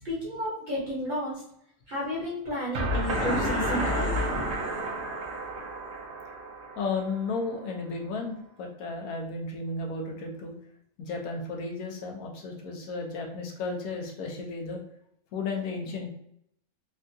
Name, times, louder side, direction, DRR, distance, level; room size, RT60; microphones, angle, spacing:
voice 1, 0.0-1.4 1.9-4.1, equal, 35° right, -6 dB, 1.0 m, -32 dB
sound 1, 2.7-7.7, right 1 dB, 60° right, 0.8 m, -32 dB
sound 2, 3.0-5.3, left 2 dB, 50° left, 1.1 m, -32 dB
voice 2, 6.8-10.5 11.0-14.8 15.3-16.1, left 3 dB, 75° left, 1 dB, 1.1 m, -33 dB
3.4 x 2.3 x 2.6 m, 0.73 s
omnidirectional pair, 1.6 m